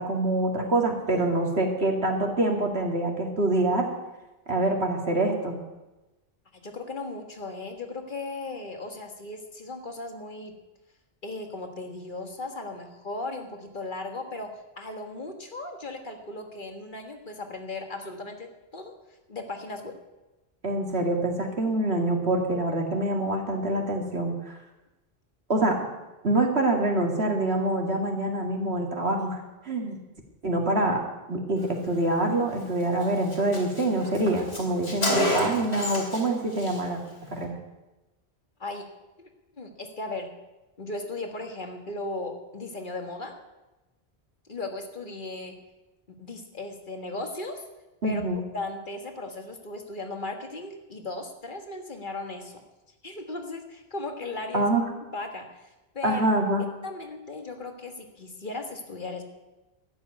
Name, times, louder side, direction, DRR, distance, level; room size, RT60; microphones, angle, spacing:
voice 1, 0.0-3.9 4.5-5.6 20.6-24.6 25.5-25.8 26.2-29.4 29.6-30.0 30.4-31.0 31.3-37.0 37.3-37.6 48.0-48.4 54.5-54.8 56.0-56.7, right 2 dB, 75° right, 2 dB, 2.5 m, -25 dB
voice 2, 6.5-10.5 11.2-18.9 19.3-20.0 38.6-38.9 39.2-39.3 39.6-40.3 40.8-43.4 44.5-45.6 46.1-47.6 48.0-48.2 48.5-52.6 53.0-54.7 55.1-55.7 55.9-56.2 56.8-59.2, left 2 dB, 50° left, 4 dB, 1.8 m, -37 dB
Car, 32.6-32.7 33.0-33.1 33.3-36.3 36.5-36.8, equal, 70° left, 2.8 m, -29 dB
12.5 x 7.9 x 9.6 m, 1.0 s
omnidirectional pair, 1.1 m